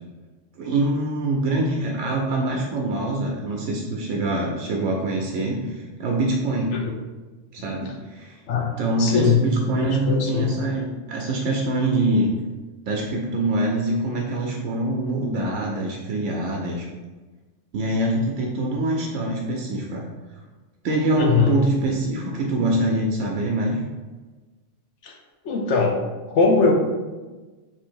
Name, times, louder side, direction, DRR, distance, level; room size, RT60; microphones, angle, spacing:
voice 1, 0.6-6.8 7.5-8.4 8.8-12.3 12.9-16.9 17.7-20.1 20.8-23.8, right 1 dB, 80° right, -1 dB, 0.9 m, -24 dB
voice 2, 9.0-9.4 9.7-10.5 21.2-21.5 25.0-25.1 25.4-26.0 26.3-26.7, left 5 dB, 70° left, 1 dB, 1.0 m, -20 dB
3.7 x 2.7 x 4.4 m, 1.2 s
omnidirectional pair, 1.3 m